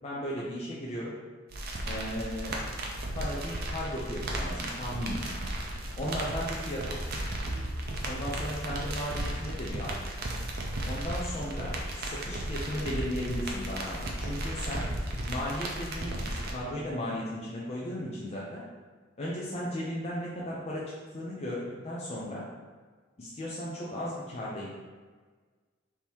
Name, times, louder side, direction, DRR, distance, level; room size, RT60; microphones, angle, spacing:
voice 1, 0.0-1.1 1.9-2.6 3.1-5.2 6.0-7.0 8.0-9.9 10.9-14.9 15.3-18.6 19.2-22.5 23.2-24.7, equal, 35° left, -5 dB, 0.5 m, -36 dB
sound 1, 1.5-16.5, right 1 dB, 50° right, 0.6 m, -35 dB
3.6 x 2.8 x 4.5 m, 1.5 s
head